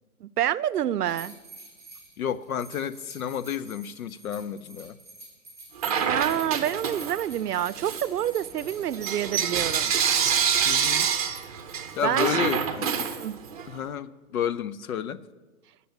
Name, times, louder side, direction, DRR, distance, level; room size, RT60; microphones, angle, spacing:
voice 1, 0.2-1.3 6.1-9.9 12.0-12.7 13.2-13.4, right 11 dB, 85° right, 0.6 m, -28 dB
sound 1, 1.1-10.3, right 2 dB, 5° left, 2.2 m, -47 dB
voice 2, 2.2-5.0 10.6-11.1 12.0-13.1 13.7-15.2, left 8 dB, 65° left, 0.7 m, -31 dB
Bell / Coin (dropping), 5.8-7.3 7.7-13.7, right 7 dB, 25° right, 0.7 m, -27 dB
10.5 x 6.8 x 8.8 m
hypercardioid pair, 160°, 45 cm